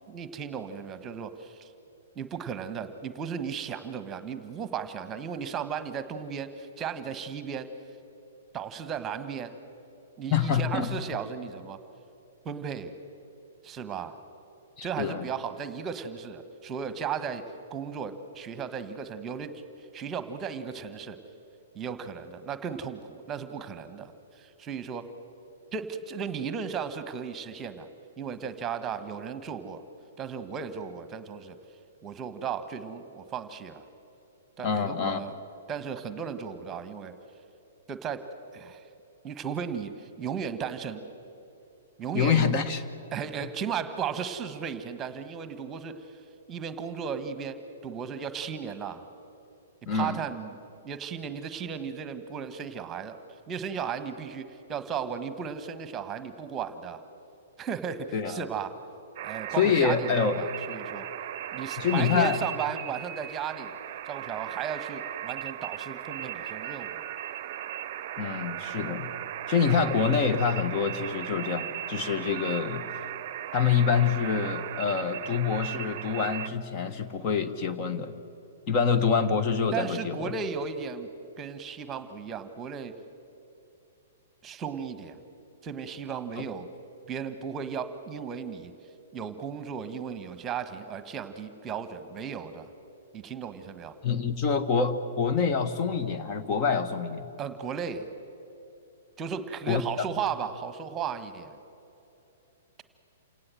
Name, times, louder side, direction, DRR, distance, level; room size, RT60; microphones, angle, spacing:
voice 1, 0.1-1.7 2.1-7.7 8.5-9.5 10.2-11.8 12.4-12.9 13.6-14.2 14.8-17.4 17.7-19.5 19.8-21.2 21.7-25.1 25.7-27.9 28.2-29.8 30.2-31.5 32.0-33.8 34.6-35.3 35.7-37.1 37.9-38.2 38.5-38.8 39.2-41.0 42.0-42.6 43.1-46.1 46.5-49.0 49.9-50.6 50.8-53.2 53.5-57.0 57.6-58.7 59.2-61.1 61.5-63.7 64.0-67.0 79.7-81.1 81.4-82.9 84.4-85.2 85.6-86.7 87.1-88.7 89.1-92.7 93.1-94.0 97.4-98.1 99.2-101.6, right 7 dB, 20° right, 11 dB, 1.4 m, -35 dB
voice 2, 10.3-10.9 14.8-15.2 34.6-35.2 42.1-42.8 49.9-50.2 58.1-58.4 59.6-60.4 61.8-62.4 68.2-69.1 69.5-72.8 73.5-78.1 78.7-80.3 86.4-86.5 94.0-97.3 99.7-100.0, left 6 dB, 35° left, 9 dB, 1.5 m, -26 dB
sound 1, 59.2-76.5, right 12 dB, 50° right, 0.7 m, -37 dB
28.5 x 18.0 x 7.8 m, 2.8 s
figure-of-eight pair, 115°, 0 cm